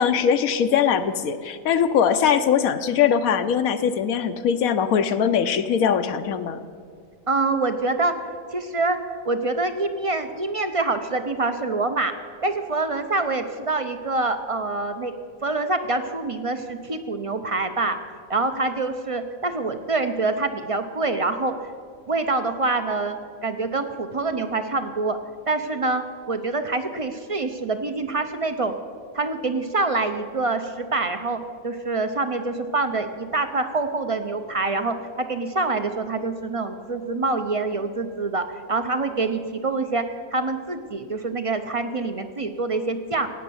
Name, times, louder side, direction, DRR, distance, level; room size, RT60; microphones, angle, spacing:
voice 1, 0.0-6.6, left 7 dB, 85° left, 8 dB, 1.1 m, -21 dB
voice 2, 7.3-8.1 8.5-9.0 9.2-12.1 12.4-15.1 15.4-18.0 18.3-21.7 22.1-25.2 25.5-26.0 26.3-28.7 29.1-43.3, right 3 dB, 35° right, 8 dB, 0.6 m, -25 dB
16.5 x 9.1 x 7.0 m, 2.1 s
omnidirectional pair, 1.5 m